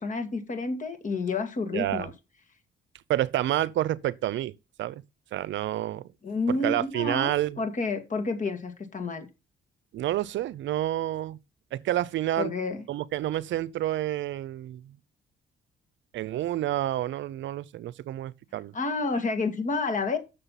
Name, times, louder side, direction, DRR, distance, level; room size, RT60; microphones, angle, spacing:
voice 1, 0.0-2.1 6.2-9.3 12.4-12.8 18.7-20.2, left 3 dB, 40° left, 2.2 m, -29 dB
voice 2, 1.7-2.1 3.1-5.0 5.3-6.1 6.5-7.6 9.9-11.4 11.7-12.5 12.9-15.0 16.1-18.7, right 13 dB, 70° right, 0.6 m, -29 dB
6.8 x 6.7 x 5.8 m
cardioid pair, 90°, 20 cm